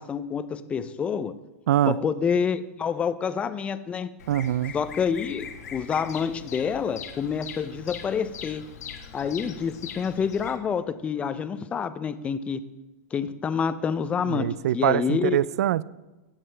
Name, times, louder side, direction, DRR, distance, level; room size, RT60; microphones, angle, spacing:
voice 1, 0.0-1.3 1.9-4.1 4.7-5.5 5.7-8.7 9.1-12.6 13.1-14.5 14.7-15.4, left 6 dB, 15° left, 0.4 m, -27 dB
Bird vocalization bird call bird song, 4.2-10.6, left 7 dB, 80° left, 1.4 m, -41 dB
voice 2, 4.3-4.7 14.3-15.8, right 12 dB, 75° right, 0.4 m, -23 dB
17.5 x 7.4 x 3.3 m
supercardioid pair, 150°, 9 cm